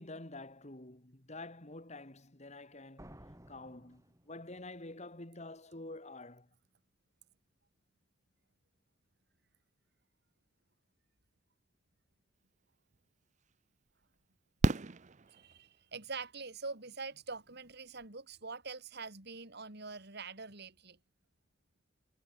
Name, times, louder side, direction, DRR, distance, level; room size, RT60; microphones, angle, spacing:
voice 1, 0.0-6.5, left 2 dB, 35° left, 3.1 m, -48 dB
sound 1, 3.0-4.8, right 1 dB, 15° right, 3.4 m, -55 dB
Fireworks, 12.9-13.0 14.6-15.9 17.7-17.8 18.0-18.1, right 2 dB, 40° right, 0.7 m, -32 dB
voice 2, 15.3-21.0, right 4 dB, 55° right, 3.7 m, -44 dB
head